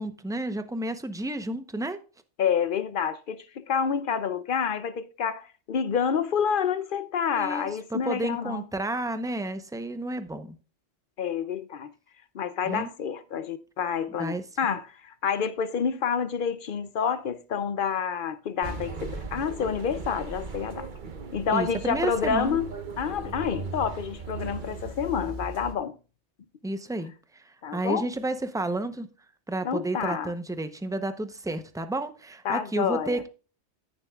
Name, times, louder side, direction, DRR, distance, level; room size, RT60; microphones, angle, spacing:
voice 1, 0.0-2.0 7.4-10.6 12.6-12.9 14.1-14.4 21.5-22.6 26.6-29.1 29.5-33.3, right 2 dB, 5° right, 0.5 m, -31 dB
voice 2, 2.4-8.6 11.2-11.9 12.3-20.9 21.3-22.7 23.0-25.9 27.6-28.0 29.6-30.3 32.4-33.2, left 7 dB, 55° left, 0.7 m, -28 dB
sound 1, 18.6-25.8, right 4 dB, 45° right, 1.0 m, -38 dB
15.0 x 7.0 x 2.3 m
omnidirectional pair, 1.2 m